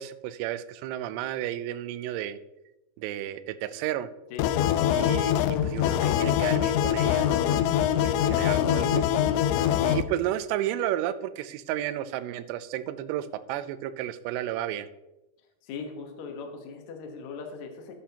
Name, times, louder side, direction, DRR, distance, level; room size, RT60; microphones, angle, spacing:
voice 1, 0.0-2.4 3.0-4.1 4.9-9.2 9.8-14.9, right 12 dB, 85° right, 12 dB, 2.6 m, -32 dB
sound 1, 4.4-10.0, left 10 dB, 90° left, 2.9 m, -24 dB
voice 2, 15.6-17.9, left 5 dB, 75° left, 3 dB, 1.7 m, -40 dB
13.0 x 10.0 x 2.9 m, 0.98 s
omnidirectional pair, 5.1 m